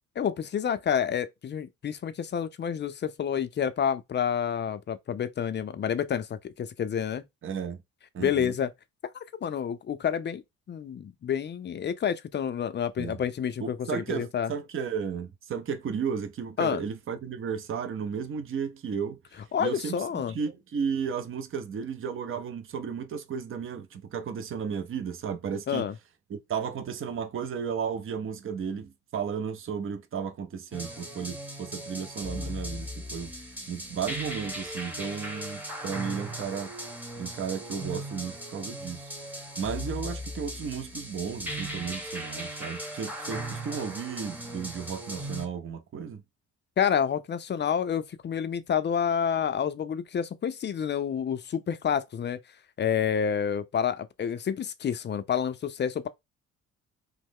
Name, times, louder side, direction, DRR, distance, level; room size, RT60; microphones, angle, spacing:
voice 1, 0.2-7.2 8.2-8.7 9.4-10.4 10.7-14.5 16.6-16.8 19.5-20.3 25.7-26.0 46.8-52.4 52.8-56.1, left 8 dB, 35° left, 0.4 m, -29 dB
voice 2, 7.4-7.8 8.1-8.5 13.0-13.2 13.6-19.2 19.6-25.9 26.3-33.3 33.7-36.7 37.2-46.2, right 7 dB, 45° right, 0.6 m, -34 dB
sound 1, 30.7-45.5, right 1 dB, 5° right, 0.9 m, -38 dB
3.1 x 2.0 x 3.5 m
cardioid pair, 90°, 30 cm